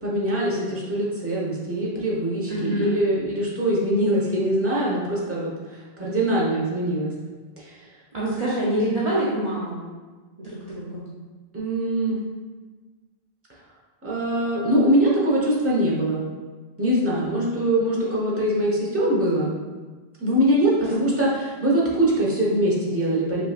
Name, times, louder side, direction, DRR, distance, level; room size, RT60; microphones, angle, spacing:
voice 1, 0.0-7.1 7.6-7.8 11.5-12.2 14.0-16.2 16.8-19.5 20.2-23.4, right 1 dB, 15° right, -6 dB, 1.0 m, -23 dB
voice 2, 2.5-3.0 8.1-9.8 10.4-11.0, right 1 dB, 40° right, -9 dB, 0.8 m, -25 dB
5.4 x 3.5 x 2.4 m, 1.3 s
omnidirectional pair, 1.1 m